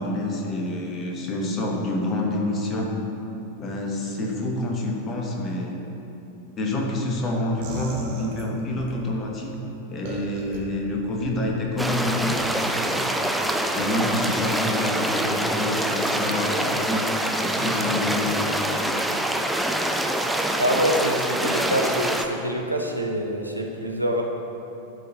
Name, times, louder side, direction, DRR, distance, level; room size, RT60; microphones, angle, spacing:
voice 1, 0.0-2.9 3.6-5.8 6.6-9.6 9.9-13.0 13.7-17.1 17.4-18.5, left 1 dB, 30° left, 0 dB, 1.0 m, -27 dB
sound 1, 7.6-9.0 10.0-10.6 11.1-11.5 12.4-12.7, right 3 dB, 55° right, 0.9 m, -36 dB
sound 2, 11.8-22.3, right 1 dB, 5° right, 0.4 m, -25 dB
voice 2, 20.6-24.3, equal, 90° right, 1 dB, 0.6 m, -25 dB
11.0 x 3.8 x 2.7 m, 2.9 s
figure-of-eight pair, 90°, 0 cm